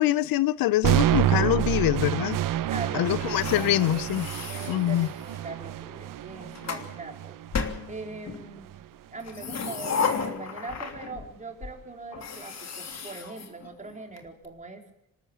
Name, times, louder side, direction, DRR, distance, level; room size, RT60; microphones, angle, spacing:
voice 1, 0.0-2.4 2.9-4.3 4.7-5.1, left 14 dB, 80° left, 0.7 m, -24 dB
sound 1, 0.8-8.9, right 12 dB, 65° right, 0.9 m, -28 dB
voice 2, 2.7-4.1 4.5-7.3 7.9-8.7 9.1-14.9, right 3 dB, 20° right, 4.1 m, -41 dB
sound 2, 3.2-5.5 6.2-6.9 7.5-8.4 9.2-11.3 11.6-11.7 12.1-14.2, left 5 dB, 50° left, 3.1 m, -34 dB
26.5 x 13.0 x 8.6 m
cardioid pair, 105°, 35 cm